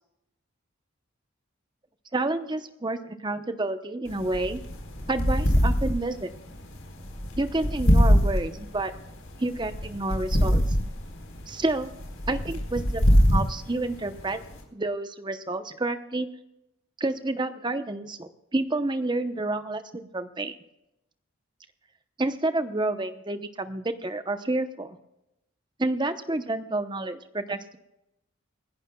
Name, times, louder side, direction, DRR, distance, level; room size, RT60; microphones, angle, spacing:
voice 1, 2.1-4.6 5.1-6.3 7.4-8.9 9.4-10.6 11.5-11.9 12.3-14.4 14.7-16.3 17.0-20.5 22.2-25.0 25.8-27.8, right 2 dB, 20° right, 9 dB, 0.8 m, -29 dB
sound 1, 4.1-14.6, equal, 80° left, 4.2 m, -24 dB
29.0 x 11.5 x 2.3 m, 0.88 s
head